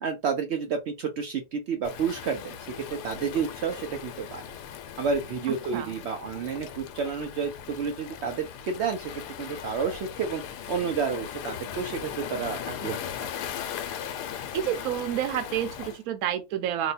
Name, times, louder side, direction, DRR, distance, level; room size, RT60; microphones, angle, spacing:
voice 1, 0.0-4.4 5.0-13.3, right 6 dB, 85° right, 0.5 m, -30 dB
Waves surf, 1.8-16.0, left 9 dB, 85° left, 1.2 m, -38 dB
voice 2, 14.5-16.9, right 11 dB, 70° right, 1.0 m, -29 dB
2.9 x 2.2 x 4.0 m
omnidirectional pair, 1.7 m